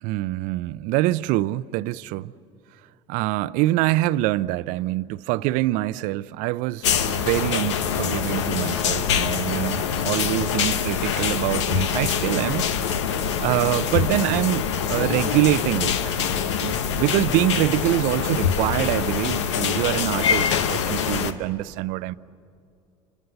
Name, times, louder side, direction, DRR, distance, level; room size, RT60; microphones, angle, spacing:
voice 1, 0.0-2.3 3.1-12.7 13.4-16.2 16.6-22.1, right 17 dB, 65° right, 0.5 m, -25 dB
sound 1, 6.8-21.3, left 7 dB, 90° left, 1.0 m, -24 dB
28.0 x 25.5 x 6.8 m
hypercardioid pair, 80°, 15 cm